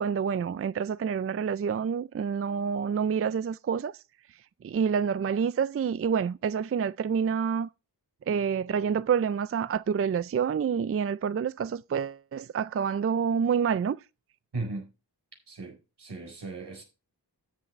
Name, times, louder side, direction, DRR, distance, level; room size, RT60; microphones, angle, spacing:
voice 1, 0.0-4.0 4.6-7.7 8.3-14.0, right 7 dB, 35° right, 0.4 m, -28 dB
voice 2, 14.5-14.9 15.5-16.8, right 3 dB, 85° right, 4.4 m, -37 dB
13.0 x 7.8 x 3.1 m
wide cardioid pair, 65°, 40 cm